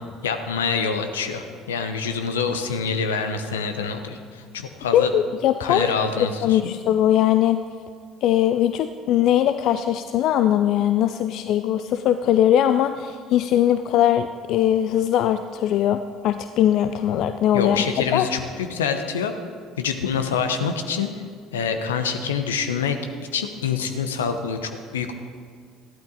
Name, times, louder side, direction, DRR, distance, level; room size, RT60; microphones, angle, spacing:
voice 1, 0.2-5.1 5.6-6.8 17.5-19.3 19.8-21.1 21.5-23.0 23.3-25.1, left 6 dB, 80° left, 7 dB, 0.9 m, -26 dB
voice 2, 4.9-5.9 6.2-7.6 8.2-17.8 18.1-18.3, left 11 dB, 55° left, 10 dB, 0.4 m, -20 dB
14.0 x 12.0 x 4.1 m, 2.1 s
figure-of-eight pair, 60°, 0 cm